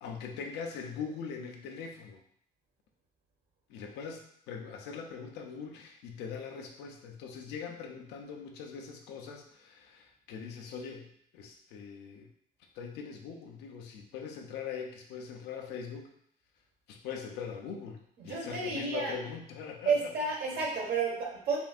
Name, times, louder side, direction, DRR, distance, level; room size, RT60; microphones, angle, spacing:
voice 1, 0.0-2.2 3.7-12.3 12.7-16.1 16.9-20.1, left 6 dB, 90° left, 3 dB, 0.7 m, -42 dB
voice 2, 18.2-19.1 19.8-21.6, right 4 dB, 70° right, -2 dB, 1.4 m, -31 dB
5.3 x 2.6 x 2.4 m, 0.68 s
cardioid pair, 110°, 17 cm